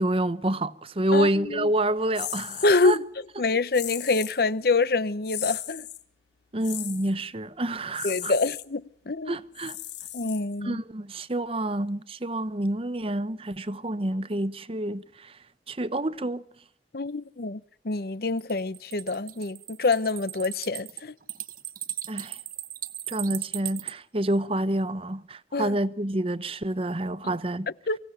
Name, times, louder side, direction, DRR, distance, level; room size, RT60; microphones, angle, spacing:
voice 1, 0.0-3.0 6.5-8.3 9.3-9.8 10.6-15.3 15.7-16.4 22.1-22.4 23.1-27.7, right 1 dB, 30° right, 0.9 m, -28 dB
voice 2, 1.1-1.7 2.6-3.0 3.4-5.9 8.0-9.4 10.1-10.8 16.9-21.1 25.5-25.8 27.9-28.0, left 3 dB, 60° left, 0.8 m, -26 dB
sound 1, 2.1-3.0 3.7-4.4 5.2-6.0 6.6-7.1 7.9-8.6 9.5-10.7, left 13 dB, 85° left, 1.8 m, -36 dB
sound 2, 18.4-23.9, right 13 dB, 50° right, 1.1 m, -37 dB
24.0 x 16.5 x 9.0 m
head